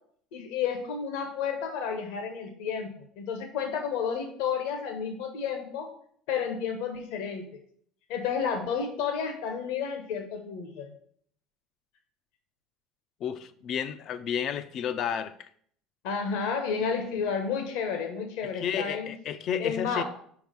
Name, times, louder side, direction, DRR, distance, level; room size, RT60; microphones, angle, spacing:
voice 1, 0.3-2.9 3.2-5.9 6.3-7.6 8.1-10.9 16.0-19.1 19.6-20.0, left 6 dB, 80° left, 1.1 m, -31 dB
voice 2, 13.2-15.5 18.4-20.0, left 8 dB, 55° left, 0.5 m, -32 dB
5.0 x 4.7 x 5.3 m
supercardioid pair, 85°, 0 cm